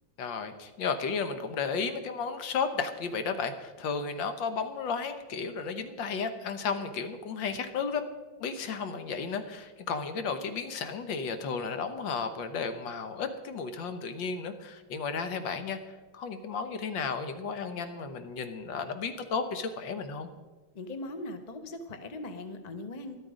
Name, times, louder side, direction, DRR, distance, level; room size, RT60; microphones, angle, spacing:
voice 1, 0.2-8.1 8.4-15.8 16.1-20.3, left 5 dB, 70° left, 9 dB, 1.6 m, -33 dB
voice 2, 20.7-23.2, left 2 dB, 35° left, 8 dB, 0.6 m, -40 dB
12.5 x 12.5 x 5.0 m, 1.2 s
omnidirectional pair, 2.2 m